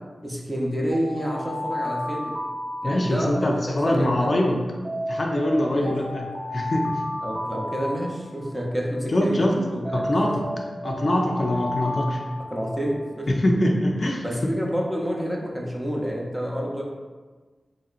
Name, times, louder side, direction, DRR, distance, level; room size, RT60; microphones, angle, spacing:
voice 1, 0.2-2.4 2.8-3.3 3.9-4.3 5.7-6.2 7.2-10.1 12.5-13.3 14.2-16.8, equal, 15° right, -2 dB, 0.6 m, -28 dB
Alarm, 0.9-3.5 4.8-8.5 9.8-13.1, left 1 dB, 60° right, 0.5 m, -32 dB
voice 2, 2.8-4.6 5.1-7.0 9.1-9.6 9.9-10.4 10.8-12.2 13.3-14.5, left 1 dB, 50° left, 0 dB, 0.4 m, -23 dB
3.1 x 2.7 x 2.4 m, 1.4 s
wide cardioid pair, 70°, 0 cm